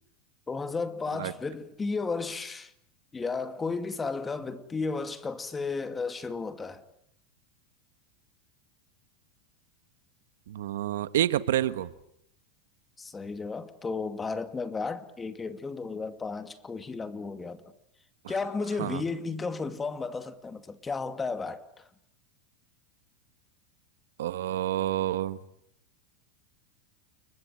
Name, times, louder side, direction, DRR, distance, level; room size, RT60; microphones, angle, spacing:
voice 1, 0.5-2.7 3.1-6.8 13.0-17.6 18.3-21.9, left 4 dB, 15° left, 2.4 m, -33 dB
voice 2, 10.5-11.9 18.8-19.0 24.2-25.4, right 12 dB, 80° right, 1.4 m, -28 dB
30.0 x 21.5 x 9.1 m
supercardioid pair, 125°, 0 cm